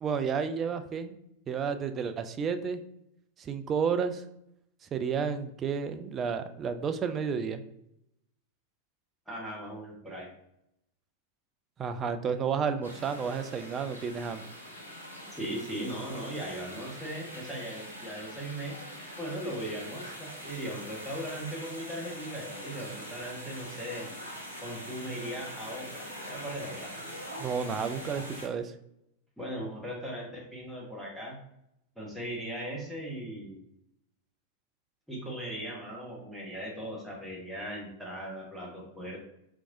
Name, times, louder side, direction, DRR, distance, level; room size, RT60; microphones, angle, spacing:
voice 1, 0.0-1.2 1.5-2.8 3.4-4.2 4.8-7.6 11.8-14.5 27.4-28.7, right 6 dB, 25° right, 8 dB, 0.3 m, -31 dB
voice 2, 9.3-10.3 15.3-18.7 19.2-24.1 24.6-26.9 29.4-31.4 32.0-33.6 35.1-39.2, right 1 dB, ahead, -5 dB, 1.0 m, -38 dB
sound 1, 12.8-28.5, equal, 85° left, 1.2 m, -43 dB
4.5 x 2.6 x 2.6 m, 0.80 s
figure-of-eight pair, 90°, 0 cm